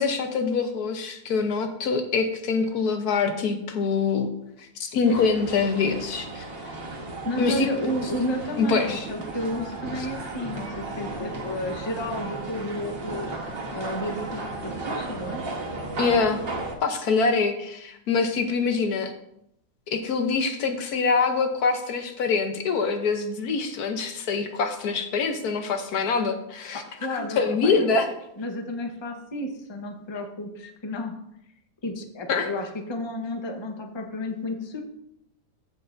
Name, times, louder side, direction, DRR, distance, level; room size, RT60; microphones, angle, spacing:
voice 1, 0.0-4.3 4.6-6.4 7.4-7.7 8.6-9.1 16.0-16.4 16.8-19.1 19.9-26.8 27.1-28.1 32.3-32.5, left 4 dB, 70° left, 6 dB, 1.3 m, -25 dB
sound 1, 5.0-16.7, right 2 dB, 40° right, 1.3 m, -34 dB
voice 2, 7.2-15.4 27.0-31.2 31.8-34.8, left 1 dB, 20° left, 4 dB, 0.8 m, -32 dB
14.5 x 6.5 x 2.6 m, 0.76 s
omnidirectional pair, 1.8 m